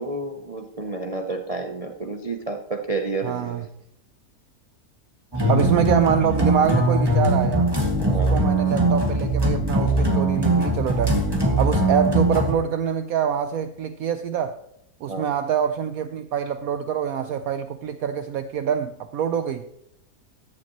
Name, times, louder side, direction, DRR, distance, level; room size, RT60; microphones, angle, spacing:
voice 1, 0.0-3.7 5.3-5.6 8.0-8.3 15.1-15.3, right 3 dB, 45° right, 0.4 m, -30 dB
voice 2, 3.2-3.6 5.5-7.7 8.1-11.3 11.6-14.6 15.0-19.7, right 8 dB, 70° right, 0.9 m, -25 dB
sound 1, 5.3-12.5, right 1 dB, 15° right, 1.8 m, -21 dB
14.0 x 11.0 x 3.0 m
omnidirectional pair, 1.8 m